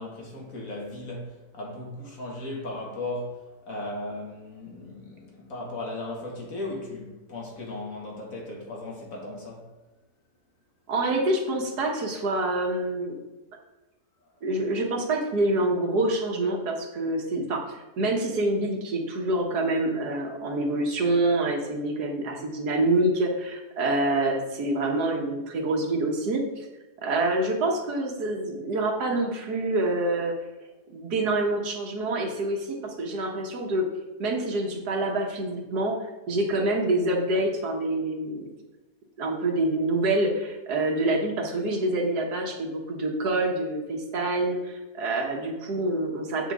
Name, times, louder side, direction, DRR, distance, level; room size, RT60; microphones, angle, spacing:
voice 1, 0.0-3.4 3.7-9.7, left 2 dB, 55° left, 2.1 m, -36 dB
voice 2, 10.9-13.2 14.4-26.7 27.0-30.3 30.9-33.9 34.2-35.9 36.3-38.5 39.2-46.5, right 2 dB, 85° right, 1.8 m, -26 dB
8.0 x 5.9 x 3.6 m
omnidirectional pair, 1.7 m